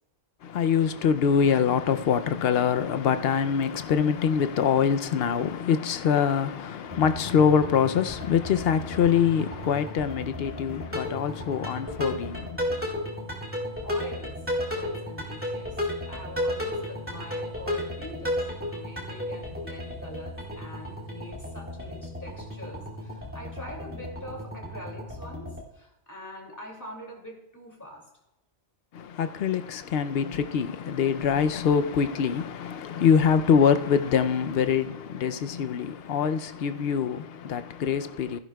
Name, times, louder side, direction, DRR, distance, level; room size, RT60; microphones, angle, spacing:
voice 1, 0.4-12.8 28.9-38.4, left 7 dB, 60° left, 0.8 m, -24 dB
sound 1, 6.9-25.6, left 1 dB, 10° right, 2.3 m, -34 dB
voice 2, 13.8-28.1, equal, 15° left, 2.4 m, -43 dB
15.0 x 11.0 x 2.3 m
omnidirectional pair, 1.2 m